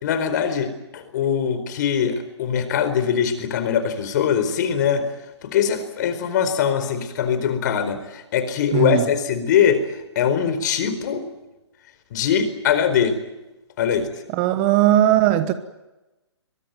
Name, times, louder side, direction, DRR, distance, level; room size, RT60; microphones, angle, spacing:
voice 1, 0.0-5.1 5.4-9.8 10.1-11.2 12.1-13.2 13.8-14.1, left 8 dB, 40° left, 4.5 m, -22 dB
voice 2, 8.7-9.1 14.3-15.5, right 12 dB, 25° right, 1.2 m, -18 dB
23.5 x 22.5 x 9.2 m
figure-of-eight pair, 135°, 14 cm